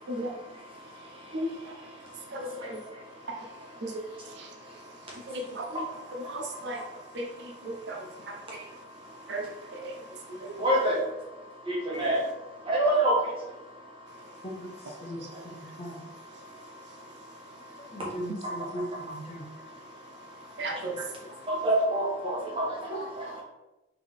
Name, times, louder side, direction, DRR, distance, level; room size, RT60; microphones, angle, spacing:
voice 1, 2.3-2.8 3.8-3.9 4.4-4.5 5.3-5.6 6.3-6.8 7.1-7.3 7.6-8.0 8.5-8.6 9.3-9.5 9.8-9.9 10.4-10.5 20.6-21.0 22.9-23.0, right 1 dB, 60° right, 2 dB, 0.5 m, -34 dB
voice 2, 10.6-11.0 11.7-12.2 12.7-13.2 18.4-19.0 21.5-23.4, right 1 dB, 25° right, -4 dB, 1.2 m, -27 dB
voice 3, 15.5-16.0 17.9-19.4 22.7-23.1, equal, 30° left, -1 dB, 0.7 m, -38 dB
3.6 x 3.3 x 3.6 m, 1.0 s
head